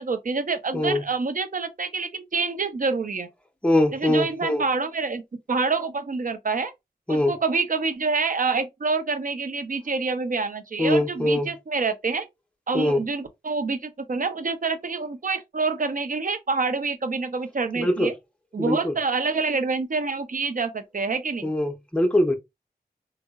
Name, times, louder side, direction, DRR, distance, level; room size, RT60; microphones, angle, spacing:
voice 1, 0.0-3.3 3.9-5.2 5.5-6.7 7.1-12.3 12.7-18.1 18.5-21.5, right 4 dB, 55° right, 0.5 m, -27 dB
voice 2, 3.6-4.6 7.1-7.3 10.8-11.5 12.7-13.0 17.7-18.1 18.6-18.9 21.4-22.3, left 1 dB, 5° left, 0.6 m, -22 dB
3.6 x 2.0 x 2.3 m
wide cardioid pair, 70°, 16 cm